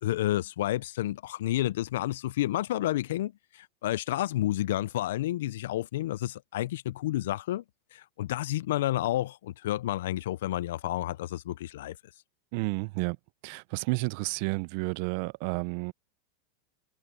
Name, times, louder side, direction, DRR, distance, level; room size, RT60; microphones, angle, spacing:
voice 1, 0.0-7.6 7.9-12.0, left 14 dB, 75° left, 0.4 m, -30 dB
voice 2, 12.5-13.2 13.4-15.9, right 26 dB, 60° right, 0.6 m, -31 dB
hypercardioid pair, 110°, 0 cm